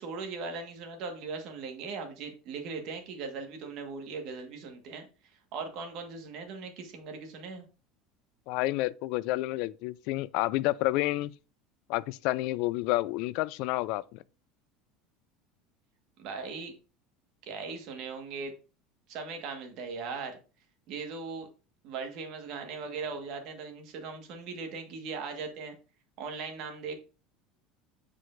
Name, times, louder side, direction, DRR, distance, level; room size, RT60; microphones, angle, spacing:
voice 1, 0.0-5.1 5.5-7.6 16.2-16.8 17.4-18.5 19.1-20.4 20.9-21.5 21.8-25.7 26.2-26.9, right 4 dB, 55° right, 1.6 m, -39 dB
voice 2, 8.5-11.3 11.9-14.2, left 18 dB, 65° left, 0.3 m, -29 dB
7.6 x 4.8 x 2.6 m
supercardioid pair, 140°, 0 cm